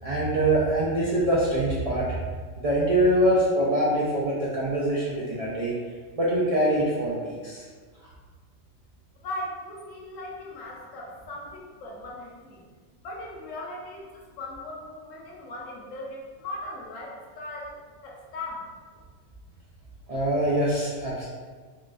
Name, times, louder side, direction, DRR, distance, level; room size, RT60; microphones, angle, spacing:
voice 1, 0.0-2.1 2.6-5.7 6.1-7.6 20.1-21.2, right 1 dB, 60° right, -7 dB, 0.3 m, -24 dB
voice 2, 9.2-12.6 13.0-18.7, left 1 dB, 80° left, -3 dB, 1.1 m, -38 dB
3.7 x 2.2 x 2.4 m, 1.5 s
omnidirectional pair, 1.3 m